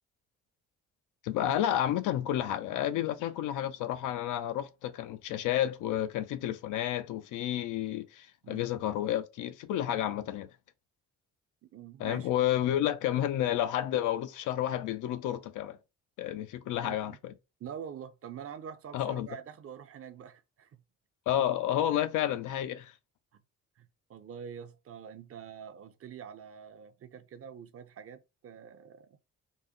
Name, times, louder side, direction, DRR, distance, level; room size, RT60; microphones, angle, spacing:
voice 1, 1.2-10.5 12.0-15.8 16.2-17.3 18.9-19.3 21.3-22.9, left 11 dB, 85° left, 0.6 m, -31 dB
voice 2, 11.6-12.3 16.8-17.2 17.6-20.8 23.3-23.4 23.8-29.1, right 8 dB, 50° right, 0.7 m, -45 dB
4.0 x 2.1 x 3.7 m
cardioid pair, 90°, 30 cm